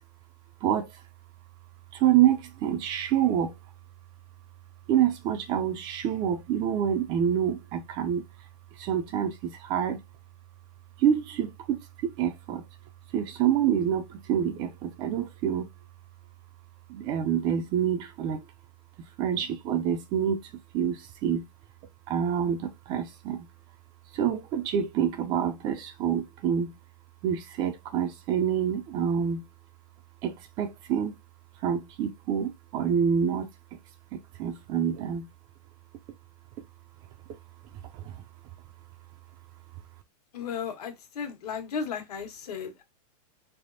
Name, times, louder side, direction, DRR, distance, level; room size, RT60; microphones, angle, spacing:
voice 1, 0.6-1.0 1.9-3.5 4.9-8.3 8.8-10.0 11.0-12.6 13.1-15.7 16.9-18.4 19.0-21.5 22.1-23.5 24.1-26.8 27.2-29.5 30.2-31.1 31.6-33.5 34.1-35.3 37.9-38.2, right 9 dB, 20° right, 0.3 m, -27 dB
voice 2, 40.3-42.8, left 6 dB, 80° left, 1.3 m, -35 dB
4.1 x 3.4 x 2.5 m
supercardioid pair, 160°, 20 cm